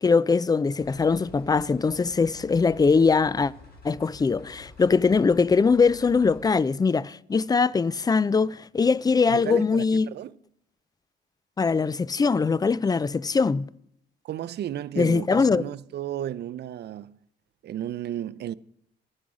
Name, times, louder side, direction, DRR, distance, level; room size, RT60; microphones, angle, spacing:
voice 1, 0.0-3.5 3.8-10.1 11.6-13.7 15.0-15.6, left 4 dB, 20° left, 0.4 m, -22 dB
sound 1, 0.8-6.5, left 2 dB, 50° left, 5.9 m, -49 dB
voice 2, 9.3-10.3 14.2-17.2 17.6-18.5, right 11 dB, 55° right, 0.5 m, -33 dB
14.0 x 10.0 x 4.9 m
cardioid pair, 90°, 20 cm